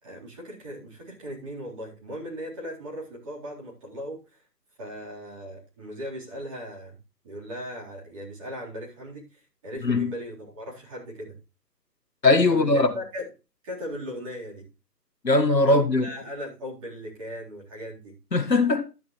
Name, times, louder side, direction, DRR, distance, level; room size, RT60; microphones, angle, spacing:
voice 1, 0.0-4.4 4.8-7.0 7.2-11.4 12.5-13.3 13.6-14.6 15.7-18.1, equal, 20° right, 4.0 m, -38 dB
voice 2, 12.2-12.9 15.2-16.1 18.3-18.8, left 2 dB, 85° left, 1.8 m, -20 dB
12.5 x 9.8 x 3.2 m
figure-of-eight pair, 155°, 49 cm